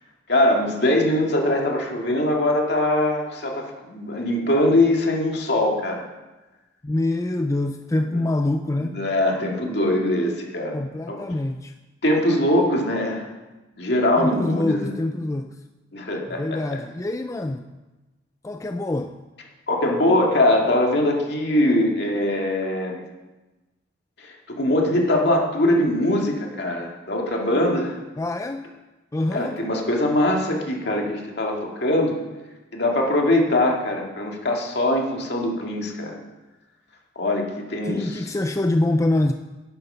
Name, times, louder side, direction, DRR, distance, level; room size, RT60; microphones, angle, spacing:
voice 1, 0.3-6.1 8.8-10.8 11.1-11.2 12.0-13.3 13.8-14.9 15.9-16.8 19.7-23.0 24.2-28.0 29.3-32.1 32.7-36.2 37.2-38.3, left 1 dB, 60° left, 0 dB, 2.3 m, -22 dB
voice 2, 6.8-9.0 10.7-11.7 14.2-15.6 16.3-17.7 18.4-19.2 28.2-28.6 29.1-29.6 37.8-39.3, left 2 dB, 15° left, 7 dB, 0.4 m, -25 dB
10.5 x 10.5 x 5.6 m, 1.1 s
head